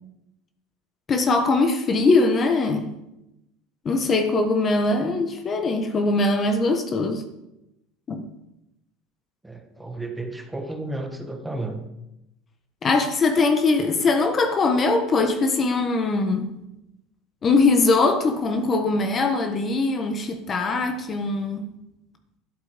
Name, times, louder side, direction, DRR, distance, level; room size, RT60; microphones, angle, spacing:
voice 1, 1.1-3.0 3.8-7.2 8.1-8.3 12.8-16.5 17.4-21.7, left 3 dB, 25° left, 6 dB, 1.4 m, -21 dB
voice 2, 9.4-11.9, right 2 dB, 5° right, 4 dB, 1.5 m, -32 dB
12.5 x 12.0 x 5.2 m, 0.88 s
supercardioid pair, 145°, 0 cm